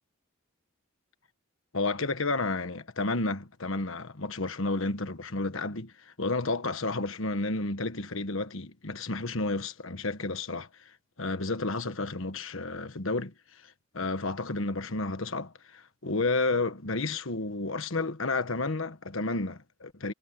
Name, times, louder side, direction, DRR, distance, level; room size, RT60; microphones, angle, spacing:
voice 1, 1.7-10.9 11.2-20.1, left 3 dB, 65° left, 1.4 m, -31 dB
head